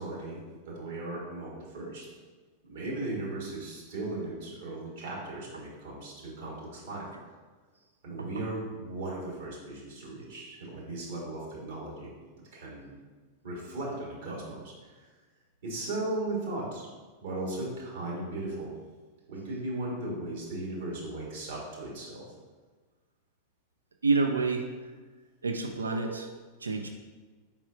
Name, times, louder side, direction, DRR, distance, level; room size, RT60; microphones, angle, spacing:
voice 1, 0.0-2.2 2.7-7.1 8.0-12.1 12.5-12.9 13.4-15.0 15.6-16.9 17.2-18.7 19.3-22.2, right 2 dB, 60° right, -4 dB, 1.4 m, -37 dB
voice 2, 24.0-24.7 25.4-26.3 26.6-26.9, right 4 dB, 75° right, 4 dB, 0.3 m, -28 dB
4.7 x 4.1 x 2.5 m, 1.4 s
figure-of-eight pair, 90°, 0 cm